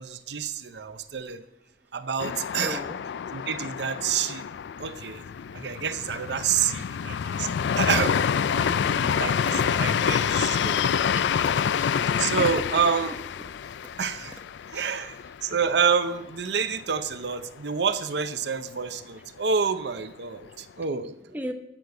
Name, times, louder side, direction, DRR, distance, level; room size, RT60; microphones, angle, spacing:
voice 1, 0.0-1.4 1.9-2.8 3.3-4.4 4.8-5.2 5.5-7.5 7.8-8.2 9.1-10.8 12.2-13.1 14.0-14.4 14.7-15.2 15.4-21.2, right 6 dB, 75° right, 11 dB, 0.7 m, -28 dB
sound 1, 2.2-15.9 16.2-16.3 16.7-17.3, left 7 dB, 80° left, 0.3 m, -27 dB
voice 2, 2.5-3.0 7.2-7.4 8.5-9.2 9.5-9.6 10.7-12.0 12.4-12.5 14.7-14.8 21.3-21.5, equal, 10° right, 4 dB, 1.0 m, -38 dB
15.0 x 6.6 x 7.0 m, 0.99 s
head